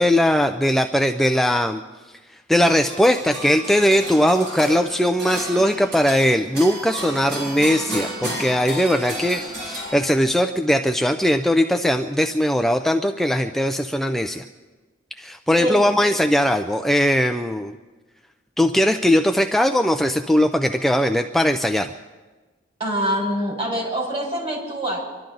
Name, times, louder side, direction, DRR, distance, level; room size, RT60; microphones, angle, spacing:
voice 1, 0.0-1.8 2.5-14.4 15.2-17.7 18.6-21.9, equal, ahead, 6 dB, 0.4 m, -19 dB
sound 1, 2.7-10.4, right 1 dB, 60° right, 5.6 m, -32 dB
voice 2, 22.8-25.0, equal, 30° right, -1 dB, 4.5 m, -25 dB
26.0 x 12.0 x 3.9 m, 1.3 s
head